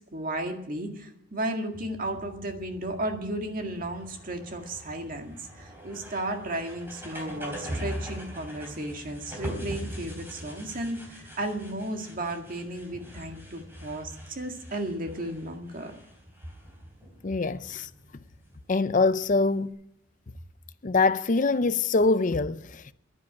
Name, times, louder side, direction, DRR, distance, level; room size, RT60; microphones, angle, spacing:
voice 1, 0.0-15.9, right 1 dB, 45° right, 1.9 m, -34 dB
sound 1, 1.7-19.7, equal, 10° right, 3.5 m, -42 dB
voice 2, 17.2-17.9 18.7-19.8 20.8-22.9, left 3 dB, 40° left, 0.6 m, -24 dB
11.0 x 10.0 x 8.9 m
head